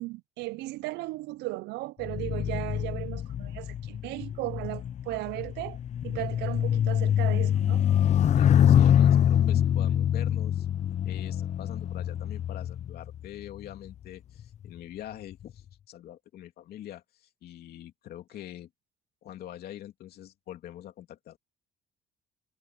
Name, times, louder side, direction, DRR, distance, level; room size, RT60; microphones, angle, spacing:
voice 1, 0.0-5.8 6.0-7.9, right 20 dB, 80° right, 0.5 m, -36 dB
sound 1, 2.0-13.6 14.4-14.7, left 10 dB, 45° left, 0.6 m, -25 dB
voice 2, 8.3-10.7 11.0-18.7 19.2-21.4, left 12 dB, 65° left, 2.9 m, -44 dB
cardioid pair, 110°, 17 cm